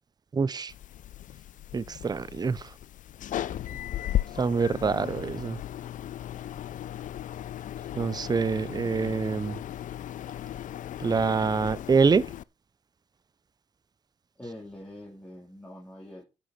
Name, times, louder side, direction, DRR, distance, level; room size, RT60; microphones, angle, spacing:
voice 1, 0.3-0.7 1.7-2.7 4.4-5.6 8.0-9.6 11.0-12.3, right 5 dB, 25° right, 0.6 m, -25 dB
sound 1, 0.7-12.4, left 12 dB, 60° left, 0.4 m, -36 dB
voice 2, 3.5-3.8 14.4-16.3, left 1 dB, 10° left, 3.5 m, -44 dB
11.5 x 7.1 x 4.3 m
cardioid pair, 80°, 15 cm